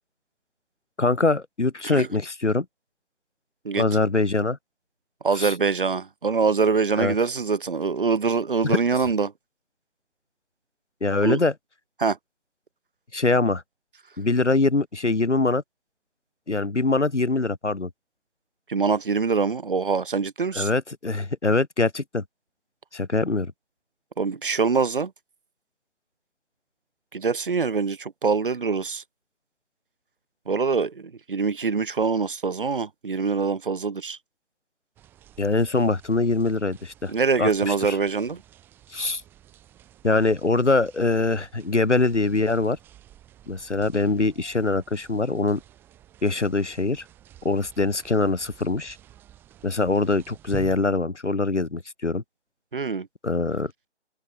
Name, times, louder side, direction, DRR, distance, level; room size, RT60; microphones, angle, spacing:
voice 1, 1.0-2.7 3.8-4.6 5.4-5.5 7.0-7.1 8.6-8.8 11.0-11.5 13.1-13.6 14.2-15.6 16.5-17.9 20.5-22.2 22.9-23.5 35.4-37.1 37.4-38.0 38.9-39.2 40.0-42.8 43.5-45.6 46.2-47.0 47.4-49.0 49.6-52.2 53.2-53.7, left 3 dB, 90° left, 1.1 m, -23 dB
voice 2, 5.2-9.3 11.2-11.4 12.0-12.2 18.7-20.7 24.2-25.1 27.1-29.0 30.5-34.2 37.1-38.4 52.7-53.1, right 5 dB, 50° right, 0.9 m, -24 dB
sound 1, 35.0-50.8, right 12 dB, 5° right, 1.7 m, -49 dB
figure-of-eight pair, 150°, 35 cm